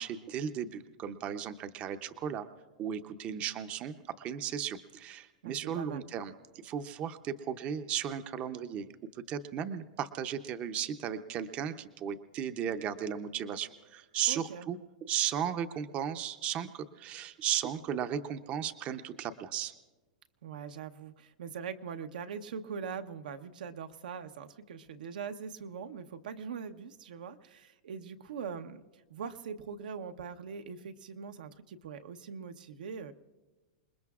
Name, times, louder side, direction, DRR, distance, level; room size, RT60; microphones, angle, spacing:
voice 1, 0.0-2.5 2.8-6.3 6.6-8.9 9.1-19.7, right 9 dB, 30° right, 10 dB, 0.6 m, -35 dB
voice 2, 5.4-6.1 14.3-14.7 20.4-33.1, right 6 dB, 80° right, 7 dB, 0.9 m, -42 dB
28.0 x 20.0 x 2.4 m, 1.2 s
hypercardioid pair, 145°, 4 cm